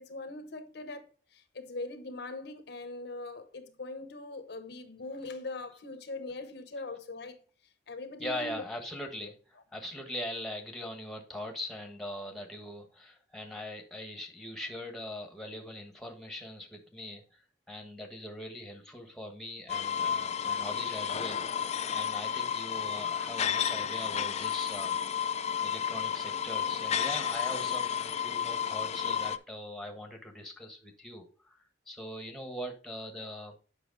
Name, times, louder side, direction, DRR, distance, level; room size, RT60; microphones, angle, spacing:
voice 1, 0.0-7.4 7.9-8.6 9.2-9.3, left 2 dB, 65° left, 1.0 m, -41 dB
voice 2, 8.2-17.4 17.7-25.0 25.6-33.5, left 1 dB, ahead, 1.4 m, -41 dB
sound 1, 19.7-29.4, left 8 dB, 40° left, 0.4 m, -32 dB
8.1 x 5.6 x 3.9 m
head